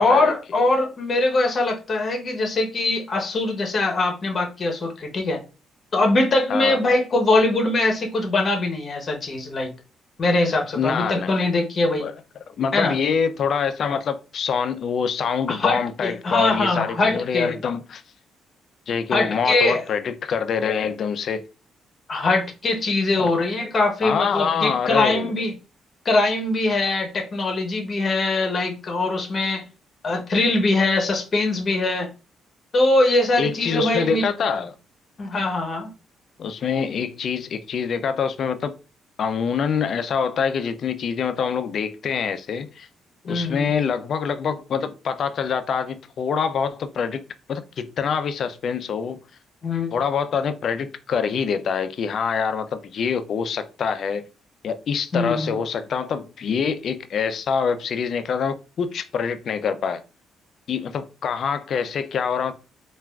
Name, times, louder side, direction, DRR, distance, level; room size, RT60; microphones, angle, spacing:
voice 1, 0.0-5.4 5.9-9.7 10.2-12.0 12.7-12.9 15.5-17.5 19.1-19.8 22.1-25.5 26.0-29.6 30.0-32.1 32.7-34.2 35.2-35.9 43.3-43.8 49.6-49.9 55.1-55.6, left 2 dB, 40° left, 0.8 m, -22 dB
voice 2, 10.8-11.3 12.0-12.1 12.5-18.0 18.9-21.4 23.2-23.3 24.0-25.3 33.4-34.7 36.4-38.8 39.2-42.9 43.2-49.2 49.9-54.2 54.6-60.0 60.7-62.5, left 6 dB, 60° left, 0.3 m, -25 dB
3.4 x 2.3 x 2.2 m
cardioid pair, 90°, 0 cm